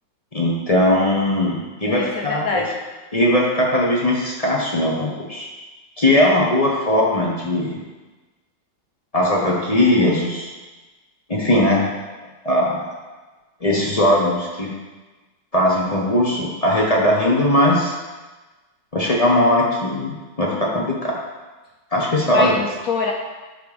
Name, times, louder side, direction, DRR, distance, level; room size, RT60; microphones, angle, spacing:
voice 1, 0.3-2.6 3.1-5.5 6.0-7.8 9.1-10.5 11.3-11.9 12.4-12.9 13.6-14.7 15.5-17.9 18.9-21.2 21.9-22.5, left 1 dB, 25° left, -3 dB, 0.9 m, -19 dB
voice 2, 1.9-2.7 22.3-23.1, left 4 dB, 70° left, 2 dB, 0.8 m, -24 dB
9.4 x 3.7 x 5.0 m, 1.2 s
omnidirectional pair, 2.1 m